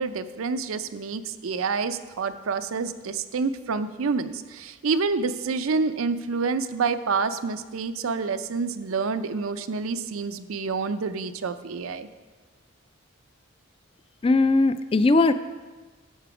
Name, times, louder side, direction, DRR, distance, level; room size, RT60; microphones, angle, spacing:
voice 1, 0.0-12.1, right 4 dB, 75° right, 11 dB, 0.5 m, -28 dB
voice 2, 14.2-15.3, left 3 dB, 25° left, 12 dB, 0.3 m, -19 dB
11.0 x 6.7 x 4.9 m, 1.3 s
head